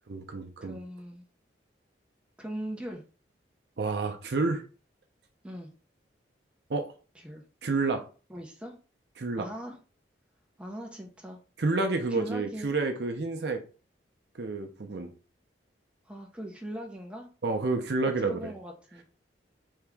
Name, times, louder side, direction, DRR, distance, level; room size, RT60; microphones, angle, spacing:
voice 1, 0.1-0.8 3.8-4.6 6.7-6.9 7.6-8.0 9.2-9.5 11.6-13.6 14.4-15.1 17.4-18.5, right 3 dB, 65° right, 6 dB, 0.6 m, -29 dB
voice 2, 0.6-1.2 2.4-3.0 5.4-5.7 7.2-7.4 8.3-8.7 9.4-9.8 10.6-11.4 12.1-12.7 16.1-17.3 18.2-19.0, equal, 5° right, 0 dB, 0.6 m, -40 dB
3.6 x 2.8 x 3.4 m, 0.36 s
head